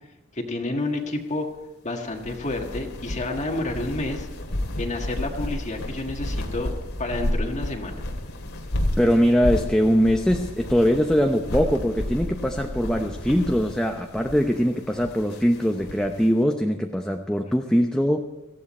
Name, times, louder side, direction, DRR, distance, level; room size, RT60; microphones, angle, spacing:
voice 1, 0.3-1.5 1.8-4.3 4.8-6.7 7.0-8.0, left 2 dB, 35° left, 2 dB, 1.6 m, -29 dB
sound 1, 2.1-16.3, left 1 dB, 85° left, 2.3 m, -32 dB
voice 2, 9.0-18.3, equal, 5° left, 3 dB, 0.7 m, -22 dB
18.0 x 15.0 x 4.3 m, 1.0 s
head